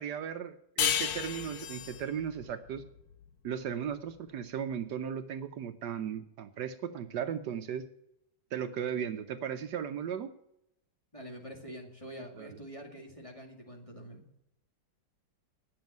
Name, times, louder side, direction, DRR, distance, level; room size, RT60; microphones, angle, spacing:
voice 1, 0.0-2.8 3.4-7.9 8.5-10.3 12.4-12.6, right 8 dB, 70° right, 9 dB, 1.3 m, -36 dB
sound 1, 0.8-4.0, left 9 dB, 60° left, 1.1 m, -34 dB
voice 2, 11.1-14.2, equal, 20° left, 1 dB, 2.1 m, -46 dB
9.7 x 7.3 x 9.1 m, 0.78 s
omnidirectional pair, 2.0 m